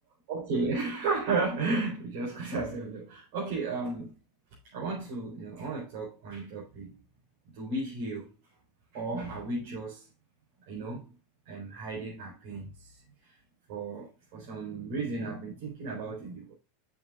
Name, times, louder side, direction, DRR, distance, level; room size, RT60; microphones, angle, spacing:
voice 1, 0.3-4.1 4.7-6.9 7.5-8.3 8.9-10.0 10.7-11.1 11.4-12.9 13.7-16.5, right 3 dB, 65° right, 4.4 m, -34 dB
8.2 x 7.3 x 2.5 m
hypercardioid pair, 105°, 0 cm